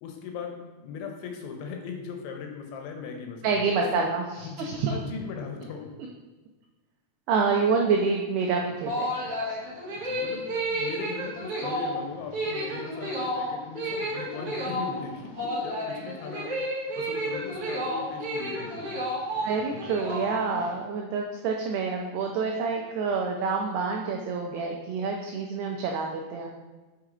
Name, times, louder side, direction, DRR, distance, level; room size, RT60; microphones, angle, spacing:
voice 1, 0.0-4.1 4.4-5.9 9.9-16.5 17.0-19.0, left 6 dB, 80° left, 2 dB, 3.0 m, -39 dB
voice 2, 3.4-4.9 7.3-9.6 19.4-26.5, right 5 dB, 85° right, 1 dB, 2.3 m, -27 dB
sound 1, 8.7-20.7, equal, 65° right, 1.4 m, -31 dB
6.6 x 4.7 x 3.8 m, 1.2 s
omnidirectional pair, 5.4 m